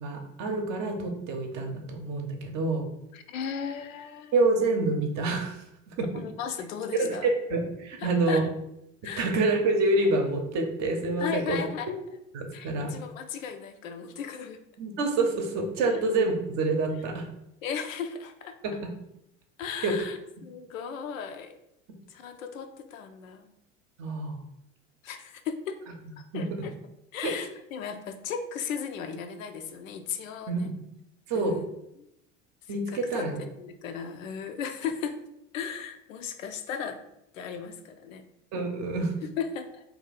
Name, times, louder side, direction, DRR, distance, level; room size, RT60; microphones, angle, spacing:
voice 1, 0.0-2.8 4.3-5.6 5.9-6.1 7.0-8.4 9.2-11.6 12.3-12.9 14.8-17.3 18.6-18.9 19.8-19.9 24.0-24.4 26.3-26.4 27.2-27.3 30.5-30.7 31.3-31.6 32.7-33.4 38.5-39.1, right 2 dB, 45° right, 4 dB, 0.7 m, -27 dB
voice 2, 3.1-4.3 6.1-7.3 8.0-8.5 9.0-9.3 11.2-11.9 12.5-14.6 15.9-16.0 17.6-18.8 19.6-21.5 22.1-23.5 25.0-25.8 26.2-26.7 27.1-30.7 31.3-31.7 32.0-32.1 32.9-35.2 35.5-37.0 37.3-38.2 39.2-39.8, left 7 dB, 75° left, 7 dB, 0.5 m, -36 dB
2.7 x 2.3 x 4.0 m, 0.82 s
figure-of-eight pair, 75°, 40 cm